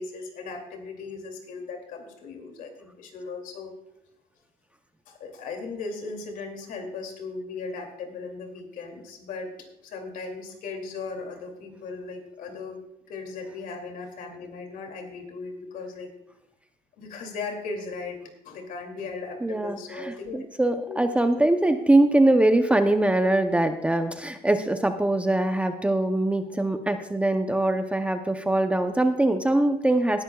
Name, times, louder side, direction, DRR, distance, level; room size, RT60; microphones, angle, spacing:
voice 1, 0.0-3.7 5.1-9.5 9.8-12.8 13.1-16.1 17.0-20.4 20.9-21.1, left 4 dB, 65° left, 3 dB, 2.6 m, -37 dB
voice 2, 19.4-30.2, right 1 dB, 10° right, 7 dB, 0.6 m, -22 dB
18.0 x 11.5 x 2.3 m, 0.83 s
cardioid pair, 140°, 15 cm